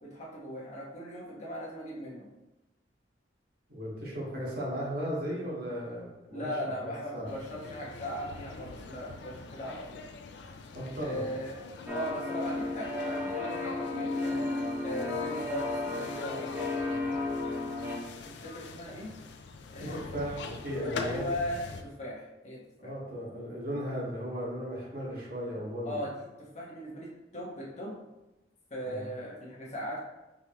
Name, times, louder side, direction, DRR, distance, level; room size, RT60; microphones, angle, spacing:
voice 1, 0.0-2.3 6.3-10.0 11.0-11.6 11.9-14.5 14.8-17.6 18.2-19.1 19.7-20.2 21.0-22.9 25.8-28.0 28.7-30.0, equal, 40° left, -5 dB, 1.2 m, -39 dB
voice 2, 3.7-7.3 10.7-11.2 19.8-21.3 22.8-26.0 28.8-29.1, equal, 55° right, -5 dB, 1.4 m, -36 dB
sound 1, 7.3-21.8, left 4 dB, 65° left, 0.4 m, -44 dB
sound 2, 11.9-18.0, left 2 dB, 10° right, 0.7 m, -33 dB
5.3 x 3.2 x 2.9 m, 1.0 s
head